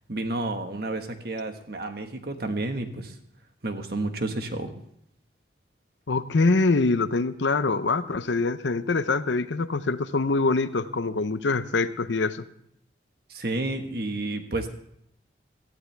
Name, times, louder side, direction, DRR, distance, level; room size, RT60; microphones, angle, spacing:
voice 1, 0.1-3.1 3.6-4.7 13.3-14.7, right 2 dB, 55° right, 6 dB, 1.5 m, -30 dB
voice 2, 6.1-12.5, left 3 dB, 80° left, 12 dB, 0.7 m, -24 dB
17.5 x 14.0 x 3.4 m, 0.71 s
head